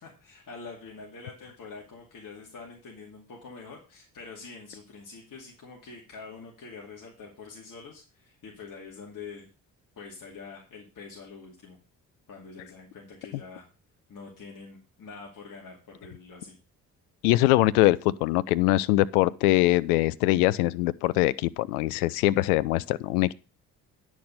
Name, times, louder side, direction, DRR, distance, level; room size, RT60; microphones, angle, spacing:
voice 1, 0.0-9.5 10.0-11.8 12.3-13.7 14.1-16.6, left 4 dB, 45° left, 2.5 m, -45 dB
voice 2, 17.2-23.3, left 17 dB, 75° left, 0.6 m, -23 dB
10.5 x 6.3 x 5.3 m
figure-of-eight pair, 45°, 46 cm